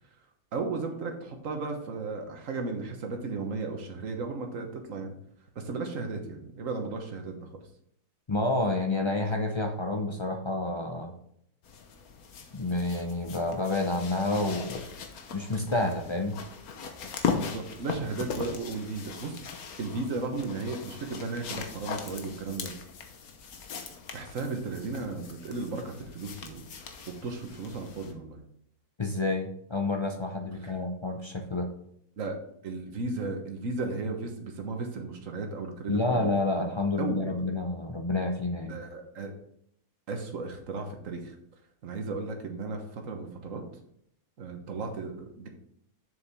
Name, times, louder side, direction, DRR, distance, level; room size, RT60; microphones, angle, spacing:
voice 1, 0.5-5.1 5.5-7.4 17.4-22.7 24.1-26.7 27.1-28.4 30.6-30.7 32.2-32.4 32.6-36.2 37.0-37.3 38.7-39.3 40.1-41.3 41.8-43.6 44.4-45.5, right 3 dB, 60° right, 4 dB, 1.6 m, -35 dB
voice 2, 8.3-11.1 12.5-14.8 15.3-16.3 29.0-31.7 35.9-38.8, left 2 dB, 45° left, 4 dB, 0.3 m, -29 dB
sound 1, 11.6-28.1 29.1-29.2, left 5 dB, 75° left, 1.5 m, -39 dB
7.2 x 7.0 x 3.6 m, 0.70 s
omnidirectional pair, 1.6 m